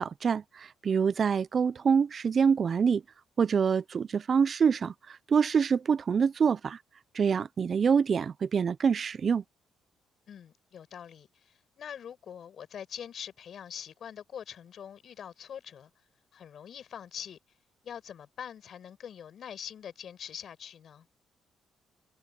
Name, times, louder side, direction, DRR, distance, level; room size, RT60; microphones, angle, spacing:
voice 1, 0.0-3.0 3.4-6.8 7.1-9.4, right 6 dB, 45° right, 0.5 m, -26 dB
voice 2, 10.3-15.9 16.3-17.4 17.8-21.1, left 8 dB, 60° left, 5.4 m, -44 dB
cardioid pair, 90°, 0 cm